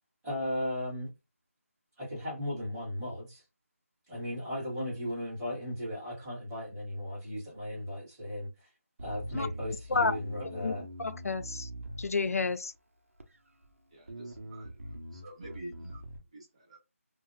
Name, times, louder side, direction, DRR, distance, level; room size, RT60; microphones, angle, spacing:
voice 1, 0.2-1.1 2.0-3.4 4.1-8.7 9.0-10.8, left 1 dB, 5° right, 1.4 m, -36 dB
Bass guitar, 9.0-12.6 13.2-13.7 14.1-16.2, equal, 65° right, 0.6 m, -44 dB
voice 2, 9.9-10.2 10.5-10.7 11.0-11.7 12.0-12.7, left 4 dB, 90° left, 0.4 m, -30 dB
voice 3, 13.9-14.7 15.1-16.0 16.3-16.8, right 1 dB, 25° right, 0.7 m, -47 dB
2.7 x 2.2 x 2.6 m
figure-of-eight pair, 175°, 8 cm